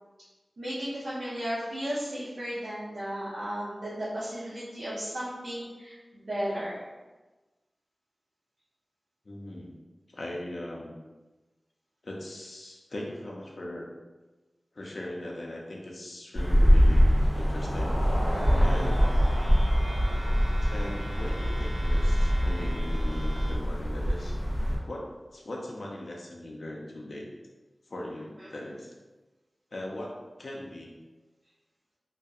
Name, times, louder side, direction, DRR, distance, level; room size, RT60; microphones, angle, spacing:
voice 1, 0.6-6.9 18.5-18.8, equal, 90° right, -11 dB, 0.7 m, -35 dB
voice 2, 9.3-9.8 10.1-10.9 12.0-13.9 14.7-18.0 18.6-19.1 20.7-24.4 24.8-27.3 27.9-28.9 29.7-30.9, left 1 dB, 65° left, -2 dB, 0.4 m, -39 dB
sound 1, 16.3-24.8, equal, 60° right, 1.3 m, -24 dB
sound 2, 18.3-23.6, equal, 25° right, 0.4 m, -44 dB
2.6 x 2.1 x 2.3 m, 1.2 s
wide cardioid pair, 80°, 0 cm